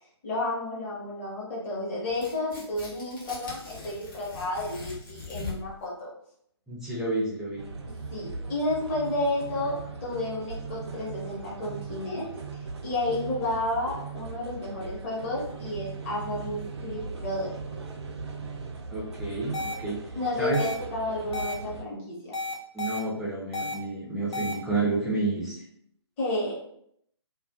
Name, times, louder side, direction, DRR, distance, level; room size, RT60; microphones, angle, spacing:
voice 1, 0.2-6.1 8.1-17.5 20.1-22.3 26.2-26.5, left 1 dB, 25° left, -6 dB, 0.9 m, -31 dB
Tearing, 2.1-5.8, left 3 dB, 50° left, 1.1 m, -41 dB
voice 2, 6.7-7.6 18.9-20.0 20.4-20.6 22.7-25.6, right 2 dB, 5° right, -7 dB, 0.5 m, -30 dB
sound 1, 7.6-21.8, right 4 dB, 70° right, 0.5 m, -39 dB
sound 2, 19.5-19.7 20.5-20.7 21.3-21.5 22.3-23.0 23.5-23.7 24.3-24.5, left 3 dB, 70° left, 0.6 m, -32 dB
2.5 x 2.3 x 2.3 m, 0.70 s
figure-of-eight pair, 140°, 15 cm